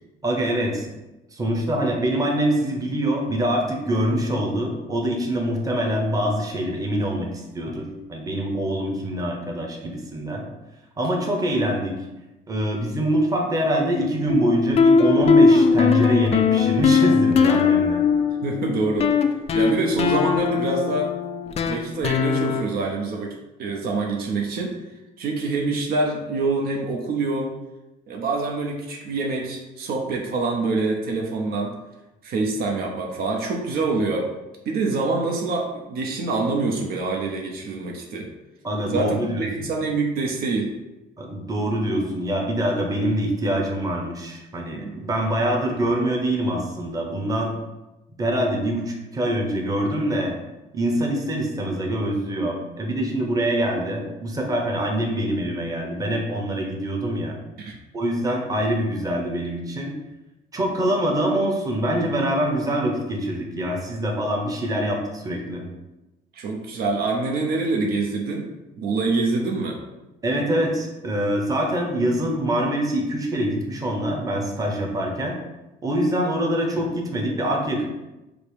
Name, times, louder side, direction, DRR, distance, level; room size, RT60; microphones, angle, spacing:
voice 1, 0.2-0.9 1.3-10.4 11.0-11.9 12.5-18.0 38.6-39.5 41.2-47.6 48.2-50.3 50.7-57.4 57.9-60.0 60.5-65.6 70.2-75.4 75.8-77.8, right 1 dB, 20° right, 0 dB, 0.9 m, -24 dB
sound 1, 14.3-22.6, left 5 dB, 40° left, 0.4 m, -20 dB
voice 2, 18.4-19.1 19.5-21.1 21.6-24.7 25.2-27.5 28.1-31.7 32.2-34.3 34.7-38.3 38.9-40.7 44.7-45.0 57.6-57.8 66.3-68.5 68.8-69.8, right 3 dB, 65° right, 1 dB, 0.8 m, -25 dB
5.1 x 2.0 x 4.8 m, 1.0 s
cardioid pair, 110°, 17 cm